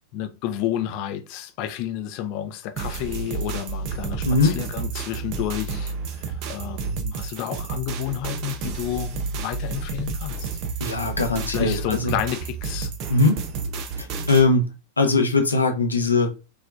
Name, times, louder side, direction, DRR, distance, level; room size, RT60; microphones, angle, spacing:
voice 1, 0.1-10.5 11.5-12.9, left 11 dB, 45° left, 0.7 m, -31 dB
sound 1, 2.8-14.5, right 4 dB, 40° right, 0.7 m, -31 dB
voice 2, 4.2-4.6 10.8-12.1 13.1-13.4 14.0-16.3, left 3 dB, 80° left, 0.9 m, -21 dB
5.1 x 3.3 x 2.5 m
figure-of-eight pair, 90°, 0 cm